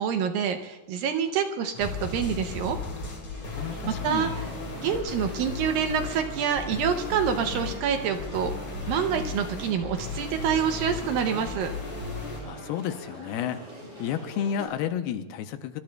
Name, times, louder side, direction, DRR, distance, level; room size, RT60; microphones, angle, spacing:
voice 1, 0.0-2.8 3.5-3.6 3.9-4.5 4.8-8.5 8.9-11.7, right 7 dB, 75° right, 6 dB, 2.2 m, -27 dB
sound 1, 1.7-12.4, left 3 dB, 45° left, 5.4 m, -35 dB
sound 2, 3.3-14.7, right 1 dB, 50° right, 9.4 m, -44 dB
voice 2, 3.5-4.3 12.4-13.6 14.0-15.8, left 9 dB, 80° left, 8 dB, 2.6 m, -31 dB
24.0 x 24.0 x 2.3 m, 1.1 s
omnidirectional pair, 4.6 m